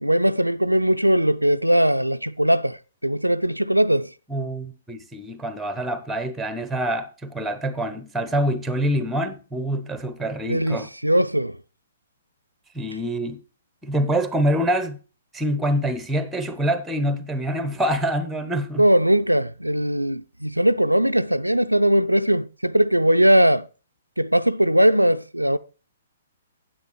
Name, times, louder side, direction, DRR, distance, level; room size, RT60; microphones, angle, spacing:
voice 1, 0.0-2.8 3.0-4.1 10.5-11.5 18.8-23.6 24.2-25.6, right 1 dB, 85° right, 0.4 m, -19 dB
voice 2, 4.3-10.9 12.7-13.4 13.8-15.0 15.3-18.9, right 1 dB, 5° right, 0.9 m, -25 dB
9.5 x 7.8 x 4.6 m
figure-of-eight pair, 120°, 0 cm